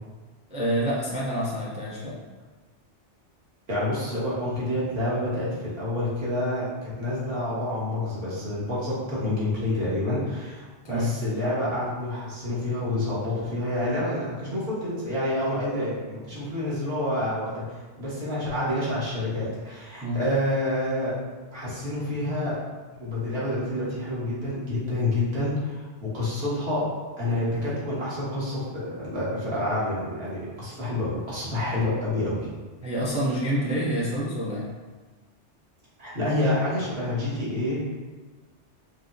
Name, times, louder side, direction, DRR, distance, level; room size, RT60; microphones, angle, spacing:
voice 1, 0.5-2.2 10.8-11.1 20.0-20.2 32.8-34.7, equal, 10° right, -5 dB, 0.3 m, -27 dB
voice 2, 3.7-17.6 18.0-21.2 21.5-22.6 23.0-25.8 26.1-26.8 27.2-32.5 36.0-37.8, left 1 dB, 60° right, -8 dB, 1.3 m, -28 dB
4.7 x 2.0 x 2.6 m, 1.3 s
omnidirectional pair, 1.2 m